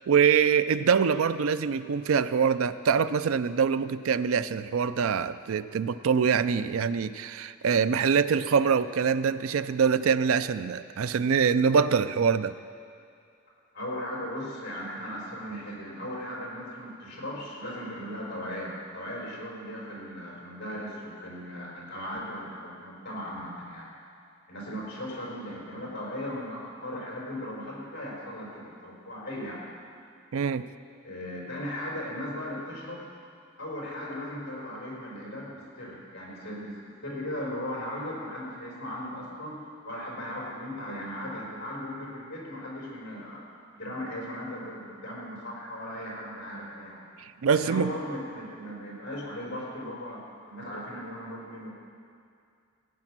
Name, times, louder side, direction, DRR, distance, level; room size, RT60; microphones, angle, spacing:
voice 1, 0.1-12.5 30.3-30.6 47.2-47.9, right 6 dB, 75° right, 13 dB, 0.4 m, -24 dB
voice 2, 13.7-23.9 24.5-29.7 31.0-33.0 33.6-39.6 39.8-43.5 43.8-47.1 47.5-50.2 50.5-51.7, equal, 55° left, -4 dB, 4.2 m, -37 dB
16.0 x 8.8 x 6.1 m, 2.4 s
head